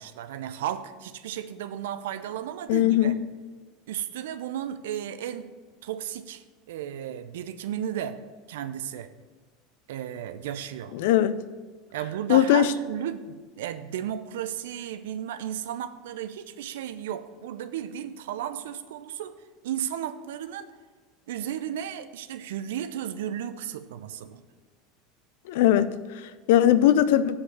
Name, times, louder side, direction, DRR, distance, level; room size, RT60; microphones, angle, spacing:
voice 1, 0.0-3.2 3.9-5.5 5.8-9.1 9.9-10.9 11.9-19.3 19.6-20.7 21.3-24.4, right 10 dB, 70° right, 0.6 m, -34 dB
voice 2, 2.7-3.2 10.9-11.4 12.3-12.7 25.5-27.4, left 12 dB, 65° left, 0.5 m, -20 dB
8.4 x 5.3 x 6.9 m
hypercardioid pair, 80°, 0 cm